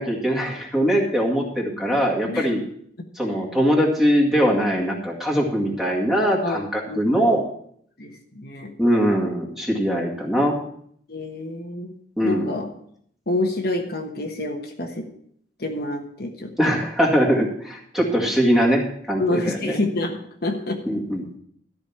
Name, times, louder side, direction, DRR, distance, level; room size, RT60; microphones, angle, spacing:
voice 1, 0.0-2.6 3.2-7.4 8.8-10.6 12.2-12.5 16.6-19.8 20.9-21.3, equal, ahead, -2 dB, 2.0 m, -21 dB
voice 2, 6.4-7.4 8.0-8.7 11.1-11.9 12.2-12.7 13.3-15.1 15.6-16.8 19.2-20.8, left 2 dB, 55° left, 3 dB, 1.2 m, -28 dB
13.0 x 5.2 x 7.1 m, 0.66 s
head